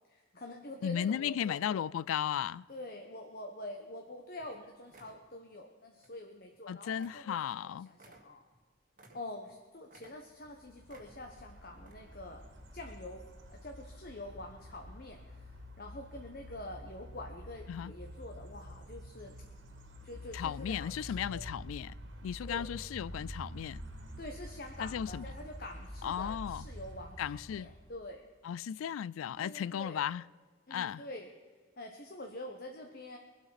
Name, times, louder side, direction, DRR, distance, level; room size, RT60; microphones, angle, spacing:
voice 1, 0.1-1.9 2.7-8.4 9.1-12.4 12.7-19.3 20.0-21.4 22.5-22.7 24.2-27.2 27.5-28.3 29.4-30.0 30.7-31.3 31.8-33.2, left 1 dB, 45° left, 1.2 m, -46 dB
voice 2, 0.8-2.6 6.7-7.9 17.7-17.9 20.3-21.9 22.2-23.8 24.8-25.3 26.0-26.7 27.2-27.7 28.4-30.2 30.7-31.0, left 9 dB, 90° left, 0.3 m, -35 dB
sound 1, 4.0-4.1 4.4-4.6 4.9-5.3 6.0-6.2 6.5-6.6 7.0-7.3 7.5-7.6 7.9-9.6 9.9-10.5 10.9-11.4 11.8-11.9, right 2 dB, 40° right, 1.8 m, -59 dB
sound 2, 10.4-28.0, equal, 75° right, 2.7 m, -48 dB
22.5 x 8.2 x 5.8 m
head